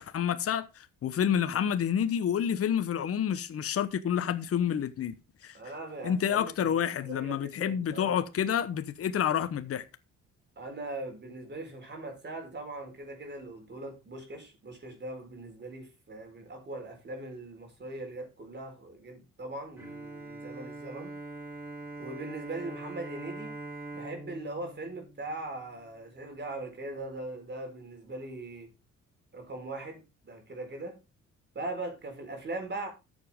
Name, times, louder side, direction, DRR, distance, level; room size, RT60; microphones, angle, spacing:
voice 1, 0.0-5.1 5.4-5.6 6.0-9.8, left 9 dB, 50° left, 0.9 m, -29 dB
voice 2, 5.5-6.8 7.0-8.3 10.6-21.2 22.0-23.6 23.9-28.7 29.3-31.0 31.5-32.9, right 2 dB, 35° right, 4.6 m, -40 dB
Bowed string instrument, 19.8-25.9, right 2 dB, 10° right, 5.6 m, -43 dB
13.0 x 7.4 x 3.6 m
cardioid pair, 90°, 30 cm